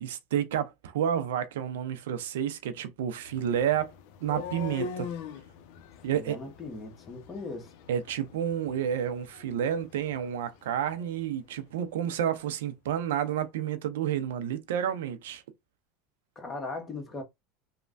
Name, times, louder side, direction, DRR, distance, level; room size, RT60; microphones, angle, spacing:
voice 1, 0.0-3.9 4.2-5.1 6.0-6.4 7.9-15.4, right 9 dB, 85° right, 0.5 m, -30 dB
sound 1, 3.2-11.2, left 6 dB, 70° left, 0.5 m, -43 dB
voice 2, 6.1-7.7 16.3-17.2, left 3 dB, 25° left, 1.1 m, -38 dB
3.2 x 2.1 x 2.5 m
supercardioid pair, 115°, 0 cm